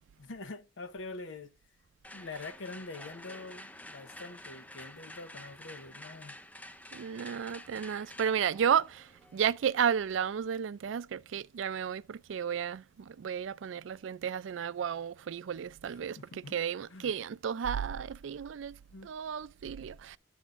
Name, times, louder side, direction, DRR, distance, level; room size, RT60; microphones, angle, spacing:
voice 1, 0.2-1.5 2.1-6.4 15.8-16.6 16.9-17.1 18.9-19.1, left 3 dB, 85° left, 0.8 m, -45 dB
sound 1, 2.0-10.0, left 1 dB, 10° left, 0.5 m, -50 dB
voice 2, 6.9-16.2 16.5-18.8 19.0-20.2, right 8 dB, 80° right, 0.4 m, -33 dB
11.0 x 7.1 x 2.5 m
head